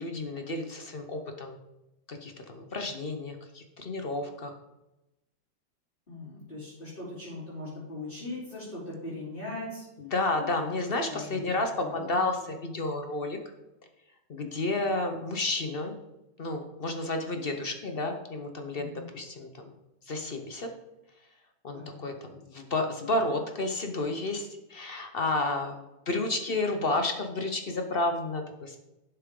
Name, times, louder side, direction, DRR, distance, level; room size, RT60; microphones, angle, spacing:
voice 1, 0.0-1.6 2.1-4.6 10.0-13.4 14.3-15.9 16.4-18.9 19.1-19.7 20.1-20.7 21.6-28.8, left 2 dB, 55° left, 5 dB, 0.6 m, -31 dB
voice 2, 6.1-9.8 11.1-11.4 11.8-12.2 18.7-19.1 21.7-22.0, left 2 dB, 25° left, -11 dB, 3.3 m, -40 dB
11.5 x 6.8 x 3.7 m, 0.95 s
omnidirectional pair, 2.1 m